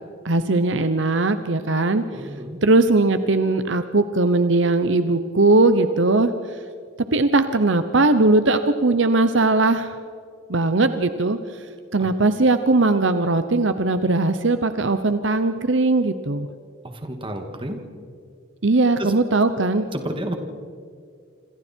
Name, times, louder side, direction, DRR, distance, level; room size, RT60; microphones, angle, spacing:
voice 1, 0.2-2.1 2.6-6.3 7.1-10.0 10.5-11.4 11.9-16.5 18.6-19.9, right 2 dB, 65° right, 10 dB, 1.0 m, -19 dB
voice 2, 2.1-2.6 12.0-12.1 16.8-17.9 19.0-19.1 19.9-20.3, right 1 dB, 25° right, 5 dB, 2.3 m, -31 dB
27.0 x 26.5 x 4.6 m, 2.3 s
head